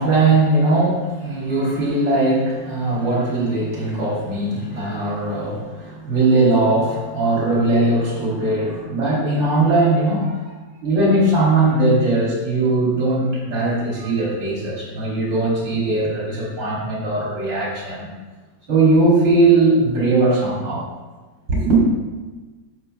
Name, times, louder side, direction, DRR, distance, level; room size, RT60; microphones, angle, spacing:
voice 1, 0.0-10.4 10.8-18.1 18.7-20.9 21.5-21.8, right 2 dB, 75° right, -6 dB, 3.2 m, -19 dB
12.0 x 6.6 x 2.3 m, 1.3 s
omnidirectional pair, 2.0 m